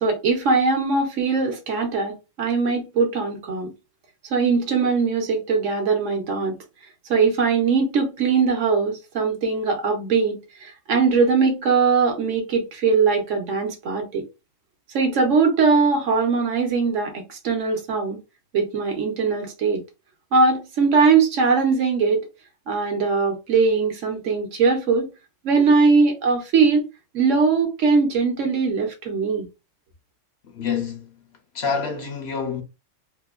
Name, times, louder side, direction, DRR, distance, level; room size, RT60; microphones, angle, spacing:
voice 1, 0.0-3.7 4.3-6.5 7.1-14.2 14.9-18.2 18.5-19.8 20.3-22.2 22.7-25.1 25.4-26.8 27.1-29.5, right 4 dB, 70° right, 1.1 m, -21 dB
voice 2, 30.5-31.1 31.5-32.6, left 6 dB, 65° left, 0.8 m, -27 dB
2.8 x 2.1 x 2.3 m
omnidirectional pair, 1.3 m